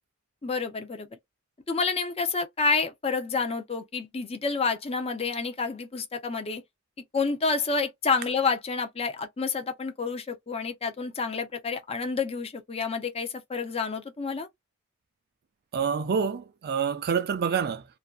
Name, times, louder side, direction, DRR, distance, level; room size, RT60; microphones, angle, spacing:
voice 1, 0.4-1.1 1.7-6.6 7.1-14.5, left 4 dB, 30° left, 0.5 m, -29 dB
voice 2, 15.7-17.9, right 6 dB, 45° right, 0.4 m, -27 dB
2.5 x 2.2 x 2.3 m
head